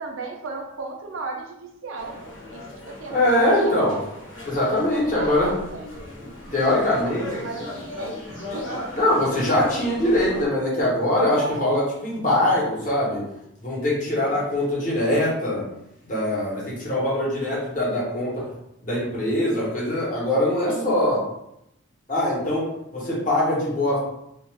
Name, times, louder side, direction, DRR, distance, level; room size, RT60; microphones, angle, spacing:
voice 1, 0.0-2.2 2.5-3.8 4.9-5.8 7.3-9.0 11.4-11.8 14.2-14.6 20.7-21.2, right 3 dB, 75° right, 2 dB, 0.5 m, -35 dB
sound 1, 1.9-10.5, left 1 dB, 70° left, 1.1 m, -37 dB
voice 2, 3.1-3.9 4.4-5.6 6.2-7.3 8.9-13.2 13.6-15.7 16.0-18.5 18.8-21.2 22.1-22.7 22.9-24.0, left 1 dB, 40° left, -6 dB, 1.0 m, -22 dB
2.5 x 2.3 x 3.2 m, 0.81 s
head